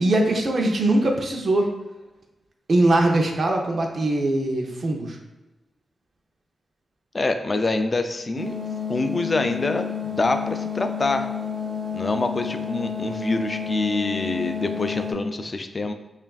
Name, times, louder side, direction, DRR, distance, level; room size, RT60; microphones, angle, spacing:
voice 1, 0.0-1.7 2.7-5.2, right 2 dB, 60° right, 2 dB, 0.6 m, -21 dB
voice 2, 7.1-8.6 8.9-11.3 11.9-15.9, left 2 dB, 40° left, 7 dB, 0.3 m, -25 dB
sound 1, 8.4-15.1, left 7 dB, 85° right, 0.8 m, -30 dB
5.4 x 2.5 x 2.3 m, 1.1 s
cardioid pair, 70°, 0 cm